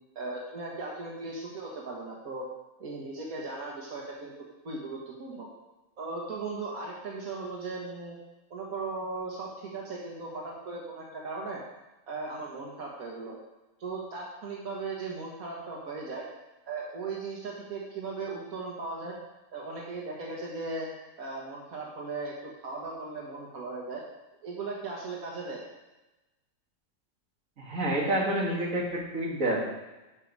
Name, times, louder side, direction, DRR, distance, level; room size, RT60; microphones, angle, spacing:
voice 1, 0.1-2.4 2.8-4.3 4.6-5.5 6.0-8.2 8.5-11.6 12.1-13.4 13.8-16.3 16.7-19.2 19.5-20.9 21.2-24.0 24.4-25.6, right 3 dB, 90° right, -3 dB, 1.8 m, -37 dB
voice 2, 27.6-29.6, right 1 dB, 70° right, -3 dB, 2.2 m, -28 dB
12.0 x 4.8 x 5.4 m, 1.0 s
omnidirectional pair, 1.4 m